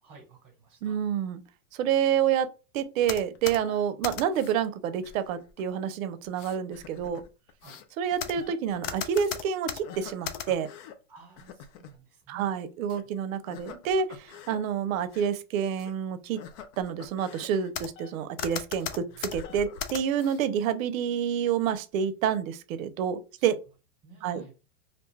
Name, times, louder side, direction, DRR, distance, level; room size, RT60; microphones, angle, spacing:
voice 1, 0.0-1.0 7.6-7.8 11.1-12.6 24.0-24.5, right 4 dB, 10° right, 1.0 m, -53 dB
voice 2, 0.8-1.4 1.7-2.5 2.7-7.2 8.0-10.7 12.3-16.4 16.8-23.6 24.2-24.4, right 8 dB, 60° right, 0.6 m, -28 dB
sound 1, 3.0-4.6 5.0-5.6 6.2-11.0 11.4-11.9 12.9-13.0 13.5-14.6 15.0-15.3 15.8-15.9 16.4-18.1 18.4-20.4, left 8 dB, 55° left, 0.5 m, -39 dB
2.6 x 2.2 x 3.2 m
supercardioid pair, 140°, 46 cm